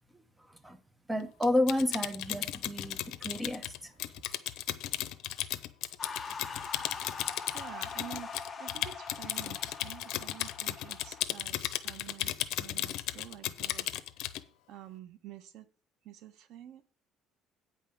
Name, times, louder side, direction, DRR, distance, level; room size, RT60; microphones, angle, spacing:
voice 1, 1.1-3.9, left 1 dB, 10° right, 1.0 m, -31 dB
Typing, 1.4-14.4, left 14 dB, 75° left, 0.7 m, -35 dB
sound 1, 6.0-11.2, left 5 dB, 20° left, 1.2 m, -43 dB
voice 2, 7.4-13.9 14.7-15.7 16.0-16.9, right 11 dB, 75° right, 1.1 m, -49 dB
9.0 x 5.6 x 7.0 m
cardioid pair, 140°, 0 cm